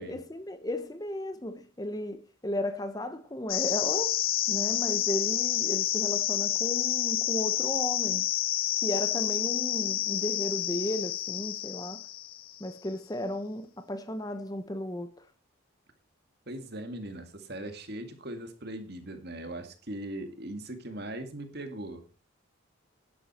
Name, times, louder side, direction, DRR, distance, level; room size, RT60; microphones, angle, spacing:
voice 1, 0.0-4.2 4.5-8.3 8.8-12.0 12.6-15.1, left 1 dB, 20° left, 0.9 m, -34 dB
sound 1, 3.5-12.7, left 13 dB, 45° left, 0.6 m, -29 dB
voice 2, 16.5-22.2, right 1 dB, 50° right, 2.2 m, -40 dB
11.0 x 11.0 x 4.3 m
head